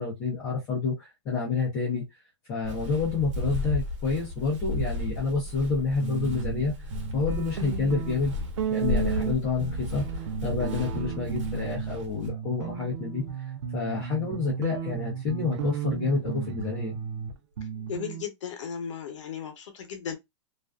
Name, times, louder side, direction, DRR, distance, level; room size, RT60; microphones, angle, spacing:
voice 1, 0.0-2.0 2.5-6.7 7.1-8.3 8.7-10.0 10.4-13.2 13.7-17.0, left 4 dB, 20° left, 0.6 m, -28 dB
Walk footsteps, 2.6-12.3, left 2 dB, 85° right, 0.9 m, -34 dB
sound 1, 6.0-6.6 6.9-12.0 12.3-18.2, right 8 dB, 65° right, 0.5 m, -34 dB
voice 2, 17.9-20.2, left 7 dB, 80° left, 0.7 m, -35 dB
2.4 x 2.3 x 2.2 m
supercardioid pair, 175°, 16 cm